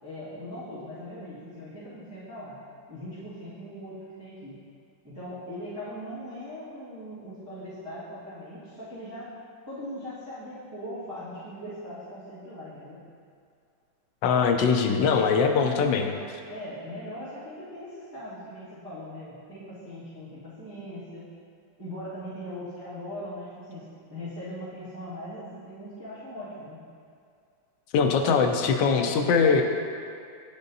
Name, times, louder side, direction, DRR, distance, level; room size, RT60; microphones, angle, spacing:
voice 1, 0.0-2.6 2.9-4.5 5.0-9.3 9.7-13.0 16.5-21.3 21.8-26.8 28.2-28.6 29.0-29.2, equal, 15° right, -15 dB, 1.6 m, -40 dB
voice 2, 14.2-16.1 27.9-29.6, left 5 dB, 75° left, 5 dB, 1.2 m, -22 dB
9.5 x 5.2 x 2.7 m, 2.3 s
omnidirectional pair, 2.1 m